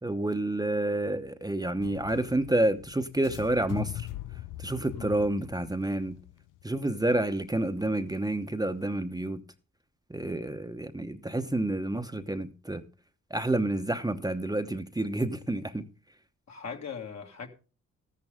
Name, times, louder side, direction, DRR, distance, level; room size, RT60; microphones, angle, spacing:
voice 1, 0.0-4.1 4.6-6.2 6.6-9.4 10.1-12.8 13.3-15.8, right 1 dB, 10° right, 0.9 m, -29 dB
sound 1, 1.8-7.9, left 14 dB, 85° left, 0.5 m, -42 dB
voice 2, 4.9-5.2 16.5-17.5, left 6 dB, 60° left, 2.2 m, -39 dB
13.5 x 11.0 x 3.6 m
cardioid pair, 75°, 31 cm